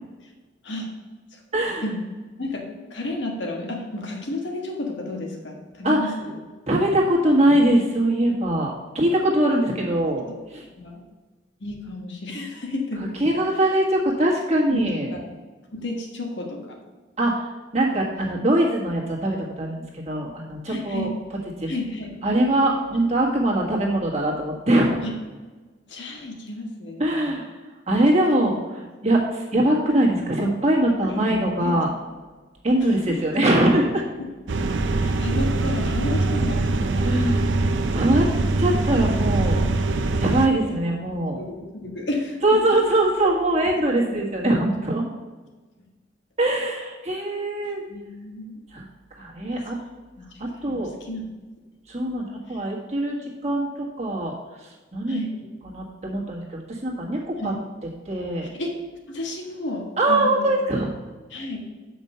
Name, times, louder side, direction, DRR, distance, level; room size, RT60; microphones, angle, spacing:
voice 1, 1.5-1.8 5.8-6.1 6.7-10.6 13.2-15.1 17.2-17.4 17.7-21.1 21.6-21.7 22.2-25.0 27.0-27.6 27.9-31.9 32.6-34.0 37.0-37.5 37.9-38.3 38.6-39.6 40.2-41.4 42.4-45.1 46.4-47.8 48.7-48.9 49.1-49.8 50.4-50.9 51.9-53.2 53.4-54.3 54.6-55.2 55.6-57.5 58.0-58.5 60.0-60.9, right 1 dB, 35° right, -2 dB, 1.6 m, -22 dB
voice 2, 2.4-6.3 10.8-11.0 11.6-13.7 14.7-15.3 15.7-16.8 20.7-21.1 21.7-22.2 25.0-25.1 25.9-27.2 28.3-28.5 31.0-31.8 33.1-33.4 34.2-34.3 34.6-37.1 38.9-39.0 40.5-40.8 41.3-42.6 47.9-48.6 49.5-49.8 50.3-51.3 52.5-52.6 55.1-55.3 57.4-57.6 58.5-58.8 59.1-60.6 61.3-61.7, left 1 dB, 75° left, 1 dB, 1.5 m, -32 dB
sound 1, 34.5-40.5, right 2 dB, 80° right, 0.6 m, -23 dB
7.2 x 5.4 x 5.5 m, 1.3 s
head